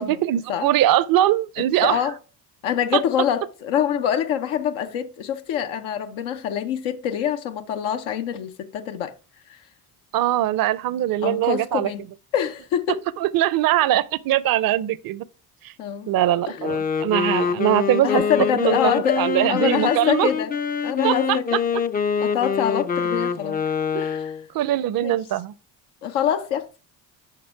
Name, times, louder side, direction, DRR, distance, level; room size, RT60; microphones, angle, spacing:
voice 1, 0.0-2.0 2.9-3.0 10.1-11.9 13.2-15.2 15.6-15.7 16.1-18.2 18.5-20.3 21.0-21.4 23.9-24.0 24.5-25.5, right 13 dB, 45° right, 0.6 m, -21 dB
voice 2, 1.8-2.1 2.6-9.2 9.5-9.6 11.2-12.1 12.3-13.0 15.8-16.1 16.5-16.6 18.0-20.5 20.8-21.6 22.2-23.6 24.0-24.4 25.0-25.2 26.0-26.8, left 9 dB, 75° left, 0.8 m, -25 dB
Wind instrument woodwind instrument, 16.5-24.5, left 6 dB, 20° left, 0.4 m, -25 dB
6.7 x 5.3 x 4.5 m
hypercardioid pair, 55°, 49 cm